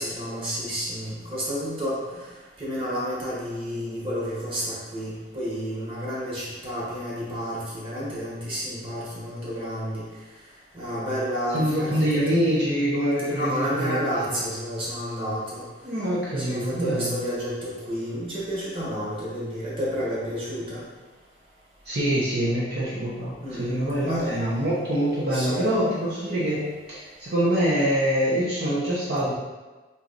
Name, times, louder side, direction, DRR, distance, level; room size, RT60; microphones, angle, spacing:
voice 1, 0.0-2.0 2.6-10.0 10.7-12.4 13.3-15.6 16.4-20.8 23.4-24.4 25.3-25.7, equal, 30° right, -7 dB, 1.4 m, -30 dB
voice 2, 11.5-14.4 15.8-17.1 21.8-29.3, equal, 60° right, -8 dB, 0.9 m, -25 dB
4.0 x 3.0 x 4.0 m, 1.2 s
head